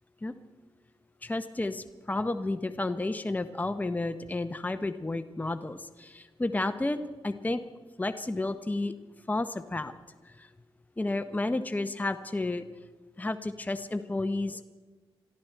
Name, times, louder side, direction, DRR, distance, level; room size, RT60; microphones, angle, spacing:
voice 1, 1.2-7.6 8.0-8.9 9.3-9.9 10.2-10.5 11.0-12.6 13.2-14.6, left 2 dB, 15° left, 9 dB, 0.8 m, -31 dB
22.5 x 13.5 x 4.5 m, 1.3 s
cardioid pair, 70°, 9 cm